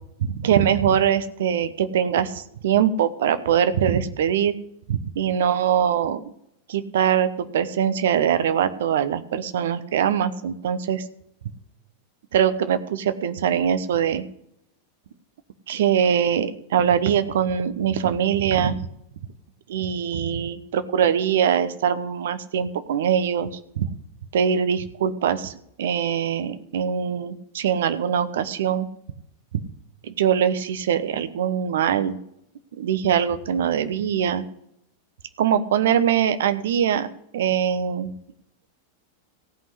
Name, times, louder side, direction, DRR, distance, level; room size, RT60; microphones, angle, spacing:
voice 1, 0.2-4.5 4.9-6.2 6.7-11.0 12.3-14.2 15.7-18.8 19.7-23.5 23.8-23.9 24.3-25.5 25.8-28.9 30.0-32.2 32.8-34.4 35.4-37.1 37.3-38.1, right 8 dB, 60° right, 12 dB, 1.0 m, -22 dB
15.5 x 5.6 x 9.8 m, 0.74 s
figure-of-eight pair, 90°, 0 cm